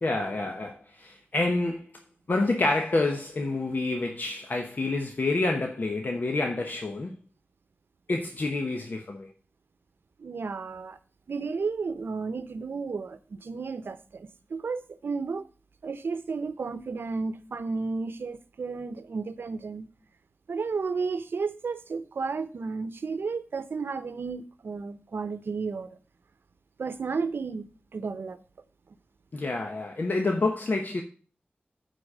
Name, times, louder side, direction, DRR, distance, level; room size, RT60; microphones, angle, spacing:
voice 1, 0.0-1.9 2.3-7.1 8.1-9.3 29.3-31.0, left 2 dB, 55° left, 1.0 m, -28 dB
voice 2, 10.2-11.0 11.3-15.5 15.8-19.9 20.5-25.9 26.8-28.4, right 4 dB, 90° right, 0.7 m, -33 dB
9.7 x 4.2 x 6.4 m
wide cardioid pair, 100°, 4 cm